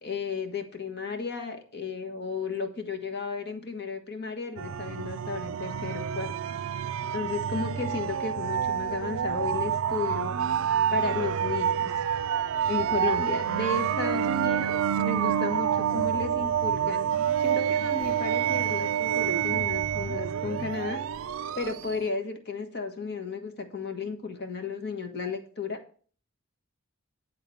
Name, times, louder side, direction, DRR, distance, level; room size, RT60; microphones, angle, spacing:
voice 1, 0.0-6.5 7.1-10.4 10.9-11.9 12.7-17.1 17.4-21.0 21.5-25.8, left 4 dB, 50° left, 5 dB, 1.4 m, -33 dB
sound 1, 4.6-22.1, right 9 dB, 65° right, 0.4 m, -28 dB
9.9 x 3.8 x 6.9 m, 0.43 s
head